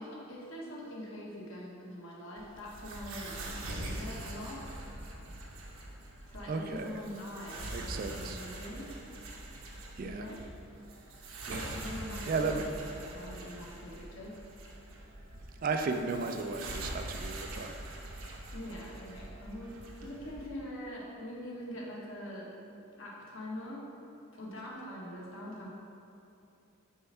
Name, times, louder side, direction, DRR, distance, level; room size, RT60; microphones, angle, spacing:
voice 1, 0.0-3.4 3.7-4.7 5.8-5.9 6.3-8.9 10.0-10.4 11.7-14.4 18.5-22.5 23.0-23.9 24.3-25.7, equal, 65° left, -4 dB, 1.3 m, -43 dB
sound 1, 2.4-20.5, right 1 dB, 70° right, 0.9 m, -43 dB
voice 2, 6.5-7.0 7.7-8.4 10.0-10.3 11.4-11.7 12.3-12.7 15.6-17.8, right 4 dB, 40° right, 5 dB, 0.3 m, -34 dB
5.5 x 4.3 x 5.5 m, 2.7 s
head